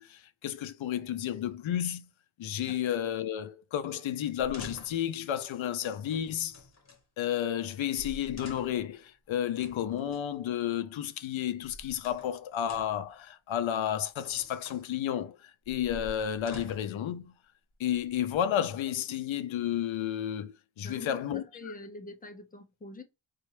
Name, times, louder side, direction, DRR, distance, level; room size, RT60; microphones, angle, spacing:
voice 1, 0.0-2.1 2.4-6.6 7.2-17.3 17.8-21.4, left 10 dB, 80° left, 0.5 m, -32 dB
sound 1, 4.3-5.1 6.1-7.0 7.7-7.8 8.0-8.9 9.6-10.2 11.4-12.4 12.6-13.1 14.0-14.8 15.6-17.0 17.8-18.5, left 2 dB, 35° left, 1.1 m, -48 dB
voice 2, 20.8-23.0, left 2 dB, 20° left, 0.5 m, -45 dB
4.1 x 2.4 x 3.1 m
wide cardioid pair, 165°, 47 cm